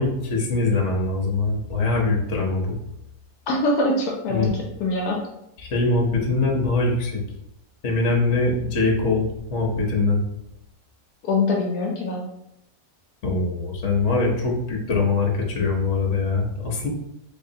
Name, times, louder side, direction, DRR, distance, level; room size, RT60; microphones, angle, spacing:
voice 1, 0.0-2.8 4.3-4.5 5.7-7.2 7.8-10.2 13.2-16.9, left 3 dB, 50° left, -1 dB, 1.1 m, -22 dB
voice 2, 3.5-4.5 4.8-5.2 11.2-12.2, left 2 dB, 75° left, 0 dB, 1.1 m, -23 dB
3.8 x 3.1 x 2.7 m, 0.85 s
omnidirectional pair, 1.7 m